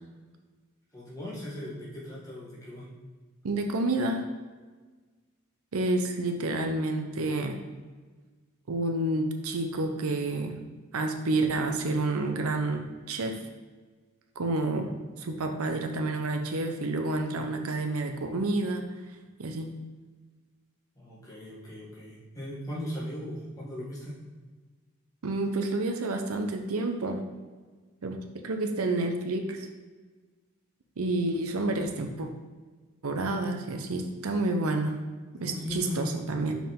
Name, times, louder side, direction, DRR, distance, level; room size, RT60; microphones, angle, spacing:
voice 1, 0.9-2.9 21.0-24.2 35.4-36.2, left 1 dB, 15° left, -7 dB, 1.8 m, -38 dB
voice 2, 3.4-4.2 5.7-7.6 8.7-10.6 10.9-13.4 14.4-18.8 19.4-19.7 25.2-27.2 28.0-29.7 31.0-32.3 33.0-35.1 35.3-36.6, right 2 dB, 80° right, 5 dB, 0.7 m, -29 dB
5.4 x 4.9 x 3.7 m, 1.4 s
head